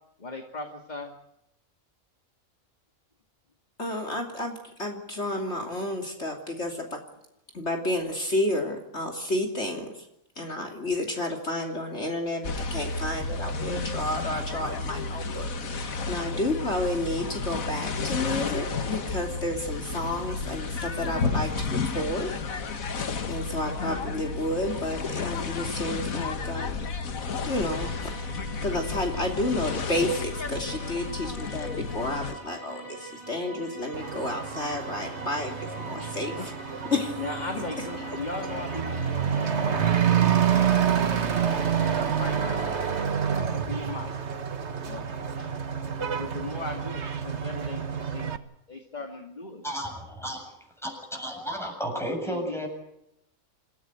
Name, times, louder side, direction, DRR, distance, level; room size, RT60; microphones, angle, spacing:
voice 1, 0.2-1.1 36.0-36.5 37.2-41.3 42.0-44.1 44.8-45.0 45.4-45.6 46.2-48.3 48.7-49.6 52.3-52.6, left 2 dB, 30° left, 4 dB, 2.5 m, -38 dB
voice 2, 3.8-7.0 7.5-10.1 10.3-22.3 23.3-26.9 27.5-28.3 28.6-36.5 36.9-37.2 37.5-38.2, left 1 dB, 50° left, 2 dB, 3.4 m, -31 dB
sound 1, 12.4-32.3, left 4 dB, 70° left, 2.0 m, -32 dB
sound 2, 27.7-43.0, right 2 dB, 20° right, 3.8 m, -44 dB
Truck / Accelerating revving vroom, 33.9-48.4, right 8 dB, 50° right, 1.7 m, -28 dB
voice 3, 49.6-50.5 50.8-52.7, equal, ahead, 2 dB, 7.6 m, -33 dB
28.0 x 16.5 x 8.0 m, 0.82 s
omnidirectional pair, 1.5 m